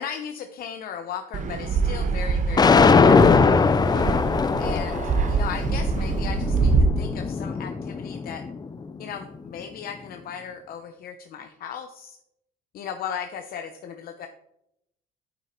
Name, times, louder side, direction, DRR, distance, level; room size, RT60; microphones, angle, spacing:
voice 1, 0.0-3.4 3.9-4.0 4.6-5.0 5.3-8.4 9.0-12.2 12.7-14.3, left 8 dB, 60° left, 6 dB, 0.9 m, -36 dB
Fixed-wing aircraft airplane, 1.3-6.8, right 4 dB, 50° right, 1.2 m, -25 dB
sound 1, 2.6-8.7, left 5 dB, 25° left, 0.6 m, -21 dB
9.2 x 8.3 x 4.5 m, 0.80 s
cardioid pair, 110°, 17 cm